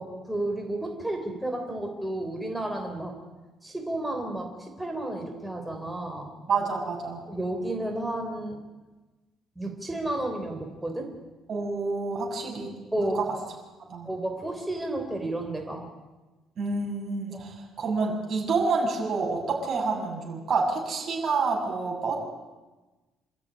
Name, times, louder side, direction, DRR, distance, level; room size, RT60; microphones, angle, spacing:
voice 1, 0.0-3.2 3.6-6.3 7.3-8.6 9.5-11.1 12.9-13.2 14.0-15.8 17.3-17.5, right 1 dB, 5° right, 2 dB, 3.4 m, -32 dB
voice 2, 6.5-7.2 11.5-12.7 13.0-13.2 13.9-14.1 16.6-22.2, right 4 dB, 45° right, 0 dB, 7.3 m, -28 dB
26.5 x 13.5 x 10.0 m, 1.2 s
cardioid pair, 135°, 0 cm